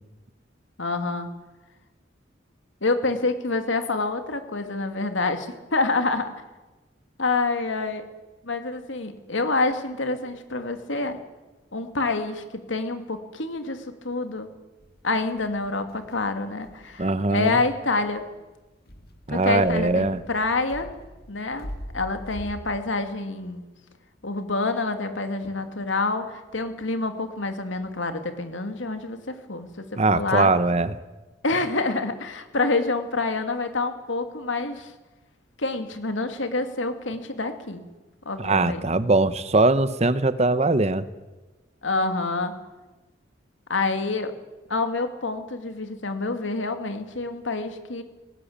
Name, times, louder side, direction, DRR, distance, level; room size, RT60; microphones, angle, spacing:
voice 1, 0.8-1.3 2.8-6.3 7.2-8.0 8.4-11.2 11.7-14.5 15.0-18.2 19.3-20.9 21.3-23.6 24.2-30.5 31.4-34.9 35.6-37.8 38.3-38.8 41.8-42.5 43.7-44.3 44.7-48.0, left 3 dB, 85° left, 7 dB, 2.4 m, -27 dB
sound 1, 14.8-22.8, equal, 55° left, 2.4 m, -43 dB
voice 2, 17.0-17.6 19.3-20.2 30.0-30.9 38.4-41.0, right 2 dB, 35° right, 14 dB, 1.0 m, -21 dB
19.0 x 18.5 x 8.7 m, 1.1 s
head